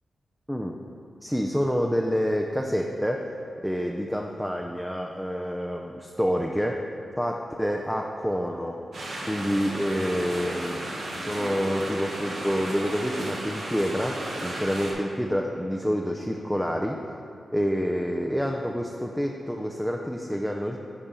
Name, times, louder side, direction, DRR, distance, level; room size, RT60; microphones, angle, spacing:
voice 1, 1.2-3.3 3.6-6.9 7.2-8.8 9.3-17.0 17.5-20.8, equal, ahead, 1 dB, 0.5 m, -28 dB
sound 1, 8.9-14.9, right 1 dB, 75° right, 1.6 m, -34 dB
10.0 x 4.3 x 5.2 m, 2.7 s
cardioid pair, 65°, 0 cm